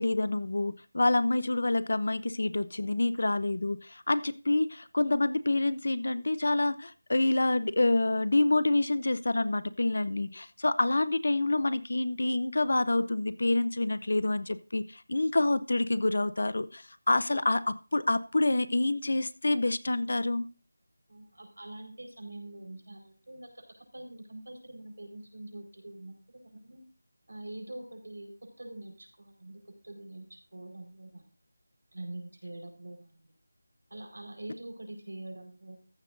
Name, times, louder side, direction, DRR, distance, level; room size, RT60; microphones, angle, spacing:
voice 1, 0.0-20.5, left 2 dB, 50° left, 15 dB, 0.6 m, -27 dB
voice 2, 21.1-23.6 23.9-26.1 26.5-26.8 27.3-30.3 30.5-31.3 31.9-33.2 33.9-35.8, right 1 dB, 80° right, 4 dB, 4.7 m, -44 dB
14.5 x 11.5 x 2.6 m, 0.33 s
figure-of-eight pair, 180°, 0 cm